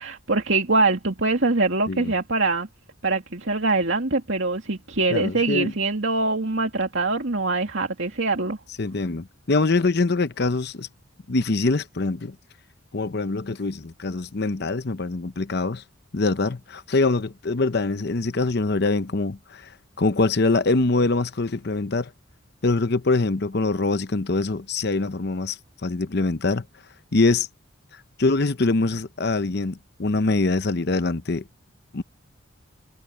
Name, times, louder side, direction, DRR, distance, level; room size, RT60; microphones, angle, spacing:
voice 1, 0.0-2.7 3.0-8.6, right 3 dB, 70° right, 2.4 m, -23 dB
voice 2, 5.1-5.7 8.8-10.9 11.3-12.3 12.9-15.8 16.1-19.7 20.0-22.1 22.6-26.6 27.1-27.5 28.2-31.4 31.9-32.0, left 3 dB, 55° left, 0.8 m, -24 dB
head